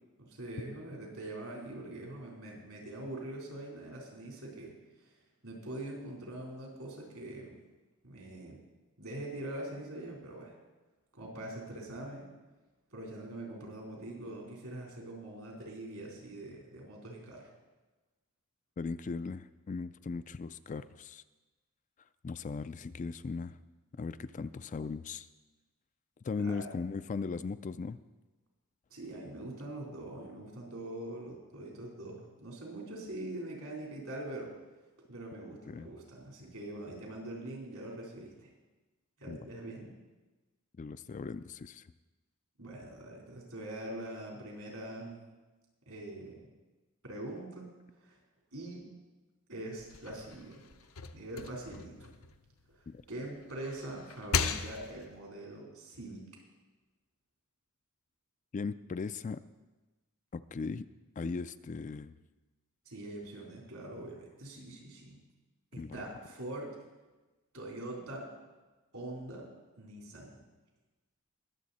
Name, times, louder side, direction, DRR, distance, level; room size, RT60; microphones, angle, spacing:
voice 1, 0.2-4.7 5.1-5.2 5.4-7.6 8.0-8.6 9.0-10.5 11.1-12.3 12.9-17.5 26.4-26.7 28.9-34.5 35.1-38.5 39.2-39.9 42.6-45.2 45.9-46.5 47.0-47.7 48.0-48.2 48.5-48.9 49.5-50.6 51.1-52.2 52.7-56.2 62.9-65.2 65.7-66.8 67.5-68.3 68.9-69.5 69.8-70.4, right 1 dB, 75° right, -2 dB, 3.8 m, -43 dB
voice 2, 18.8-21.2 22.2-23.6 24.0-25.3 26.2-28.0 35.7-35.9 39.3-39.4 40.8-41.8 52.9-53.0 58.5-59.4 60.3-60.9 61.2-62.1 65.8-66.0, left 4 dB, 35° left, 13 dB, 0.3 m, -38 dB
sound 1, 49.8-53.0 53.4-55.2, left 6 dB, 65° left, 0.7 m, -37 dB
21.0 x 7.4 x 4.2 m, 1.2 s
head